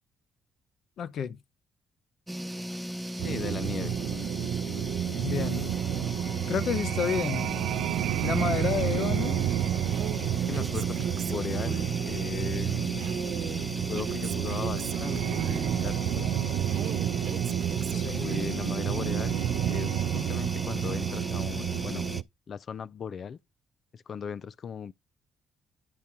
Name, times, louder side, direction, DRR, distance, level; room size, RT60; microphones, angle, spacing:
voice 1, 1.0-1.4 5.2-5.7 6.5-7.5 8.2-9.4 17.9-18.3, left 8 dB, 65° left, 0.8 m, -30 dB
sound 1, 2.3-22.2, equal, ahead, 0.8 m, -36 dB
voice 2, 3.2-4.0 9.0-9.2 10.3-11.0 11.3-13.1 13.7-16.5 18.2-19.4 19.7-22.1 22.5-23.4 23.9-24.9, left 6 dB, 50° left, 0.4 m, -38 dB
sound 2, 3.2-22.2, right 13 dB, 90° right, 0.3 m, -30 dB
Female speech woman speaking, 9.9-12.0 13.0-15.9 16.7-18.6, right 8 dB, 70° right, 1.0 m, -38 dB
10.5 x 4.3 x 3.6 m
cardioid pair, 90°, 0 cm